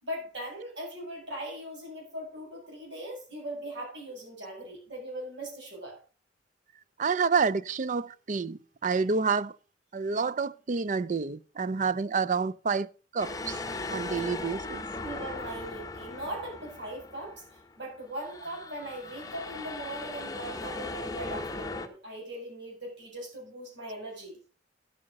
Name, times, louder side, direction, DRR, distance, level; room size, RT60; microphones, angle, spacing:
voice 1, 0.0-6.0 14.1-14.5 15.0-17.4 17.8-24.4, right 1 dB, 70° right, 7.6 m, -40 dB
voice 2, 7.0-9.6 9.9-13.6 13.9-14.8, right 5 dB, 40° right, 0.5 m, -28 dB
sound 1, 13.2-17.8 18.2-21.9, left 3 dB, 20° left, 1.1 m, -38 dB
11.0 x 8.8 x 5.3 m
head